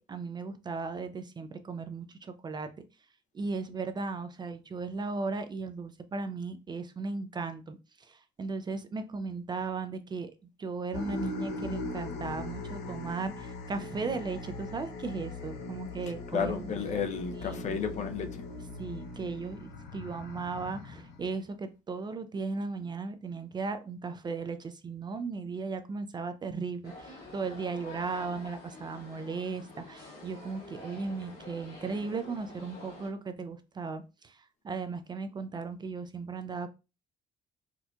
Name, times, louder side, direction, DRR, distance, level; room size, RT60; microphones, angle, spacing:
voice 1, 0.0-2.7 3.3-10.3 10.6-16.6 17.5-17.8 18.8-36.7, right 4 dB, 25° right, 0.4 m, -36 dB
sound 1, 10.9-21.5, left 3 dB, 85° left, 0.7 m, -40 dB
voice 2, 16.3-18.4, left 6 dB, 45° left, 0.5 m, -32 dB
sound 2, 26.8-33.1, left 2 dB, 65° left, 1.8 m, -48 dB
4.3 x 2.4 x 2.2 m
cardioid pair, 110°, 17 cm